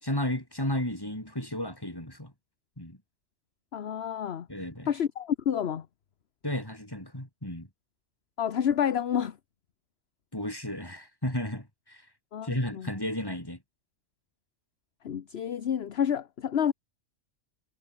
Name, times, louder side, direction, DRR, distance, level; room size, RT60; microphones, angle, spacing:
voice 1, 0.0-2.3 2.8-3.0 4.5-4.9 6.4-7.7 10.3-12.0 12.4-13.6, left 1 dB, 20° left, 5.5 m, -33 dB
voice 2, 3.7-4.5 4.9-5.8 8.4-9.3 12.3-12.9 15.0-16.7, left 8 dB, 60° left, 1.1 m, -29 dB
omnidirectional pair, 1.2 m